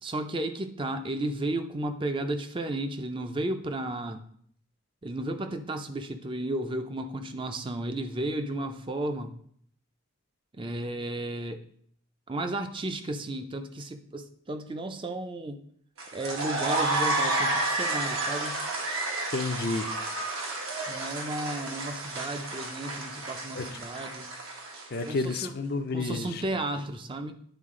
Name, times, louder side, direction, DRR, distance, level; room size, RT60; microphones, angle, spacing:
voice 1, 0.0-4.2 5.0-9.3 10.6-11.6 12.3-15.6 16.1-18.6 20.9-24.3 25.1-25.5 25.9-27.3, right 1 dB, 25° right, 7 dB, 0.5 m, -33 dB
sound 1, 16.0-25.3, right 2 dB, 80° right, 1.4 m, -31 dB
voice 2, 19.3-19.9 23.5-23.7 24.9-26.5, left 3 dB, 45° left, 8 dB, 0.5 m, -30 dB
10.0 x 4.0 x 3.7 m, 0.64 s
head